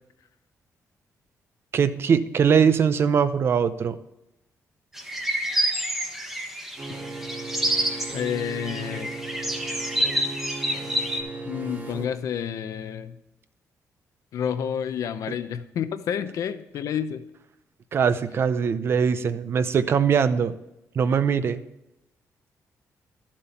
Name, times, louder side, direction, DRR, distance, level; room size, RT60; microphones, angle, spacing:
voice 1, 1.7-4.0 17.9-20.5 21.0-21.6, right 6 dB, 45° right, 12 dB, 0.6 m, -21 dB
sound 1, 5.0-11.2, right 1 dB, 5° right, 1.2 m, -28 dB
sound 2, 6.8-12.1, right 3 dB, 30° right, 1.5 m, -36 dB
voice 2, 8.1-9.1 11.4-13.2 14.3-17.2, left 8 dB, 75° left, 10 dB, 0.8 m, -29 dB
12.5 x 7.4 x 4.3 m, 0.90 s
wide cardioid pair, 160°, 6 cm